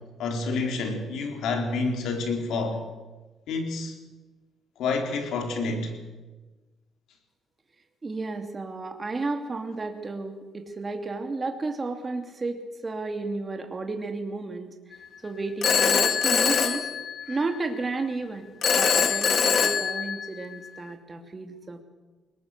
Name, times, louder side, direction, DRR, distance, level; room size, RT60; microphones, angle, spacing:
voice 1, 0.2-2.9 3.5-3.9 4.8-6.0, left 3 dB, 80° left, 3 dB, 4.1 m, -28 dB
voice 2, 8.0-14.7 15.2-16.9 17.3-21.8, right 3 dB, 30° right, 4 dB, 2.7 m, -32 dB
Telephone, 15.6-17.6 18.6-20.6, left 6 dB, 55° left, 1.9 m, -23 dB
21.5 x 19.5 x 6.7 m, 1.2 s
cardioid pair, 90°, 0 cm